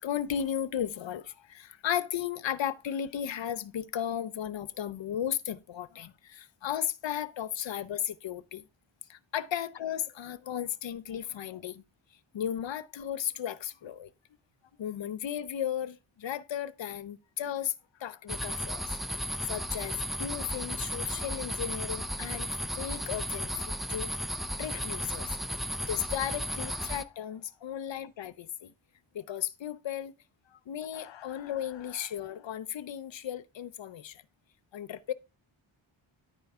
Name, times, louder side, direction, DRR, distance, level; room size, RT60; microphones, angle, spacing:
voice 1, 0.0-8.6 9.1-11.8 12.3-14.1 14.8-17.7 18.0-19.0 19.5-23.5 23.9-24.1 24.6-25.4 25.9-28.7 29.1-30.1 30.5-34.2 34.7-35.1, left 10 dB, 65° left, 0.6 m, -35 dB
sound 1, 18.3-27.0, equal, ahead, 0.3 m, -35 dB
13.0 x 4.4 x 3.6 m
wide cardioid pair, 145°, 49 cm